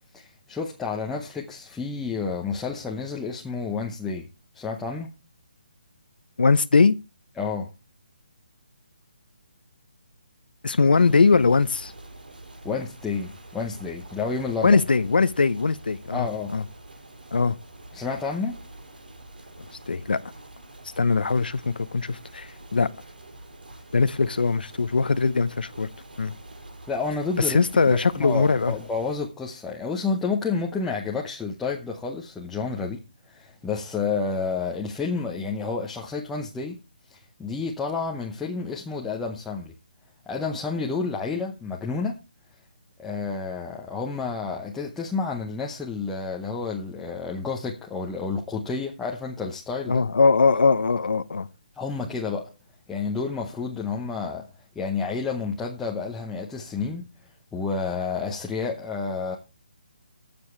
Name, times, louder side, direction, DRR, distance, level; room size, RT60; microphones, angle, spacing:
voice 1, 0.1-4.3 4.5-5.1 7.4-7.7 12.6-14.8 16.1-16.5 17.9-18.6 26.9-27.6 27.9-33.0 33.3-36.8 37.1-39.7 40.3-42.2 43.0-50.0 51.7-52.5 52.9-54.5 54.7-59.4, left 4 dB, 5° left, 0.8 m, -30 dB
voice 2, 6.4-7.0 10.6-11.9 14.6-16.3 16.5-16.6 17.3-17.5 19.9-20.2 21.0-22.9 23.9-25.9 26.2-26.3 27.5-28.7 49.9-51.5, left 4 dB, 80° left, 0.7 m, -21 dB
sound 1, 10.9-29.2, right 2 dB, 75° right, 6.0 m, -46 dB
20.5 x 7.0 x 3.2 m
hypercardioid pair, 165°, 5 cm